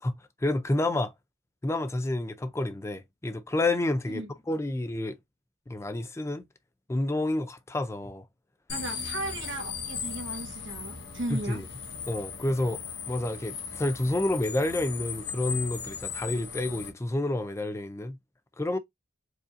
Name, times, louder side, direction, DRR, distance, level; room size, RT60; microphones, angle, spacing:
voice 1, 0.4-1.1 1.6-5.2 5.7-6.5 6.9-8.3 11.3-11.7 12.1-18.2 18.6-18.8, left 1 dB, 15° left, 0.4 m, -29 dB
sound 1, 8.7-16.9, left 6 dB, 55° left, 1.0 m, -37 dB
voice 2, 8.7-11.6, right 2 dB, 60° right, 1.2 m, -36 dB
4.7 x 2.6 x 2.5 m
head